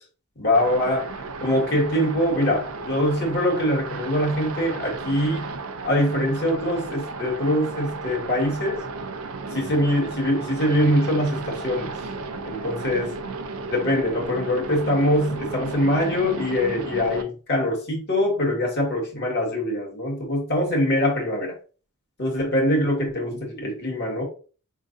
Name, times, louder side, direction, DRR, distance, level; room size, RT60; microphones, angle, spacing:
voice 1, 0.4-5.6 5.8-8.8 9.5-12.0 12.5-13.2 13.7-21.5 22.2-24.2, left 1 dB, 50° left, 1.7 m, -23 dB
sound 1, 0.5-17.2, right 3 dB, 70° right, 0.6 m, -34 dB
4.7 x 3.7 x 2.6 m
head